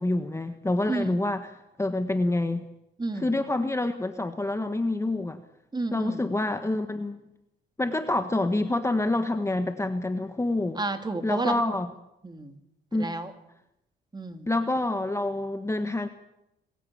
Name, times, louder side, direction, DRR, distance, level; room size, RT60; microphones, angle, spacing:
voice 1, 0.0-1.5 1.8-2.6 3.2-5.4 5.9-7.3 7.8-10.8 11.2-11.9 12.9-13.1 14.5-16.1, left 2 dB, 15° left, 8 dB, 1.4 m, -27 dB
voice 2, 3.0-3.4 5.7-6.2 10.8-11.6 12.2-12.5 12.9-13.3 14.1-14.5, right 2 dB, 20° right, 7 dB, 2.7 m, -31 dB
26.0 x 15.5 x 8.7 m, 0.86 s
cardioid pair, 90°, 20 cm